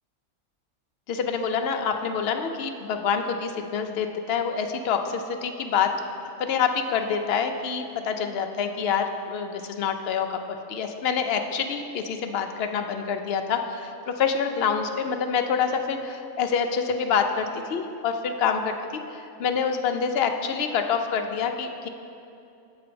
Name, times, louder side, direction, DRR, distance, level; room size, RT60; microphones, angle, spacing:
voice 1, 1.1-5.9 6.4-18.7 19.1-21.9, left 6 dB, 60° left, 5 dB, 0.7 m, -26 dB
7.7 x 4.0 x 6.8 m, 2.6 s
omnidirectional pair, 1.4 m